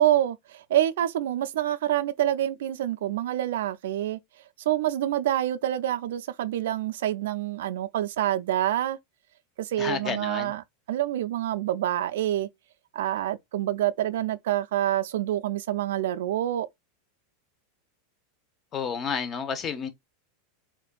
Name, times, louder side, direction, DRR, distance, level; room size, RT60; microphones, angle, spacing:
voice 1, 0.0-4.2 4.7-9.0 9.6-10.6 10.9-12.5 12.9-16.7, right 12 dB, 80° right, 0.3 m, -27 dB
voice 2, 9.8-10.5 18.7-19.9, left 6 dB, 35° left, 0.7 m, -30 dB
3.4 x 2.5 x 2.2 m
hypercardioid pair, 115°, 0 cm